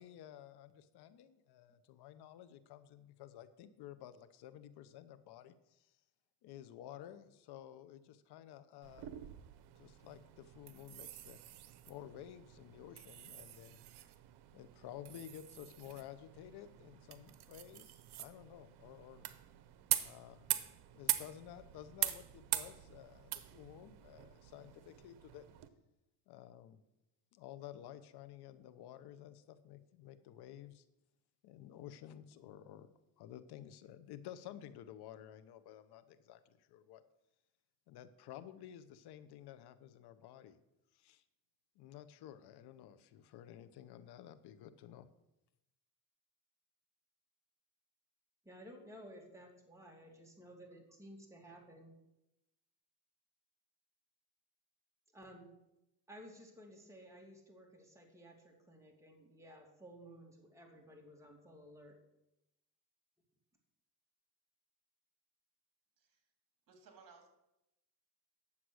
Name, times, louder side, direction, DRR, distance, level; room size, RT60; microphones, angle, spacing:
voice 1, 0.0-5.9 6.4-9.1 9.7-11.4 11.9-13.8 14.5-19.2 20.0-20.5 20.9-25.5 26.3-26.8 27.3-30.8 31.4-37.0 37.9-40.6 40.9-41.2 41.8-45.1, left 11 dB, 70° left, 13 dB, 0.9 m, -53 dB
sound 1, 8.8-25.7, right 14 dB, 70° right, 0.9 m, -43 dB
voice 2, 48.4-51.9 55.1-55.5 56.1-62.0, equal, 5° right, 0 dB, 2.6 m, -55 dB
voice 3, 66.7-67.3, right 5 dB, 55° right, 4 dB, 2.8 m, -60 dB
9.8 x 7.4 x 6.3 m, 0.89 s
cardioid pair, 110°, 40 cm